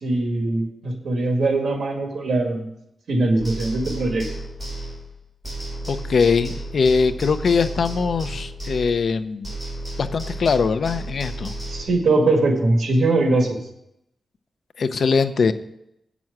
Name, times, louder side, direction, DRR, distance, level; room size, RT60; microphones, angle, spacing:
voice 1, 0.0-2.7 3.1-4.3 11.7-13.6, right 2 dB, 75° right, 2 dB, 1.8 m, -21 dB
sound 1, 3.4-5.2 5.4-9.2 9.4-11.8, right 1 dB, 5° right, 5.1 m, -33 dB
voice 2, 5.9-9.5 10.0-11.5 14.8-15.5, left 5 dB, 65° left, 11 dB, 0.6 m, -21 dB
8.5 x 6.1 x 7.8 m, 0.79 s
wide cardioid pair, 115°, 0 cm